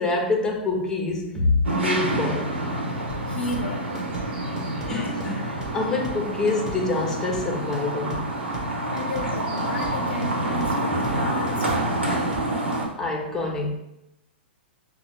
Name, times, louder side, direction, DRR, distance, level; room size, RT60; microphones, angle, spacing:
voice 1, 0.0-2.5 4.9-8.3 13.0-13.7, left 3 dB, 10° left, 0 dB, 0.9 m, -26 dB
sound 1, 1.6-12.9, right 1 dB, 80° right, 1.1 m, -27 dB
sound 2, 3.1-12.9, right 1 dB, 10° right, 1.3 m, -37 dB
voice 2, 3.3-4.0 8.9-12.4, left 2 dB, 70° left, 3 dB, 0.5 m, -33 dB
6.0 x 2.3 x 3.1 m, 0.84 s
figure-of-eight pair, 110°, 6 cm